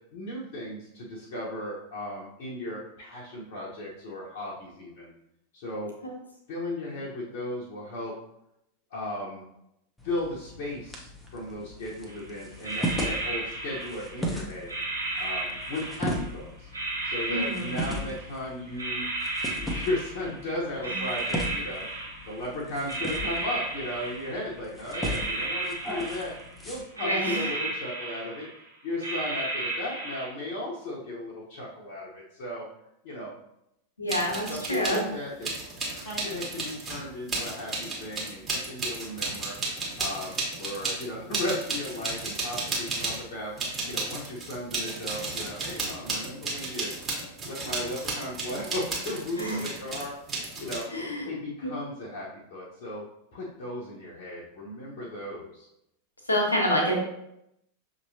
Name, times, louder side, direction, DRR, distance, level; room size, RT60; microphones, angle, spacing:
voice 1, 0.1-5.1 5.5-5.9 6.5-8.2 8.9-9.5 10.0-14.7 15.2-16.7 17.0-19.1 19.5-26.4 26.6-28.5 28.8-32.7 33.0-33.3 34.5-35.5 35.9-39.6 40.0-43.6 43.9-46.9 47.4-50.1 50.6-50.9 51.2-53.0 53.3-55.7, left 1 dB, 50° left, -6 dB, 1.0 m, -36 dB
sound 1, 10.0-26.8, equal, 10° left, 0.8 m, -37 dB
sound 2, 12.1-12.2 12.6-14.3 14.7-16.3 16.7-18.4 18.8-20.5 20.8-22.5 22.9-24.5 24.8-26.6 27.0-28.6 29.0-30.3, right 2 dB, 75° right, 1.4 m, -33 dB
voice 2, 17.3-17.7 20.9-21.0 27.0-27.4 34.0-35.1 49.4-49.6 50.9-51.2 56.3-57.0, equal, 80° left, 0 dB, 1.2 m, -27 dB
sound 3, 34.1-35.0 35.4-43.3 43.6-50.8, right 3 dB, 25° right, 1.5 m, -33 dB
6.4 x 3.0 x 2.7 m, 0.80 s
figure-of-eight pair, 90°, 0 cm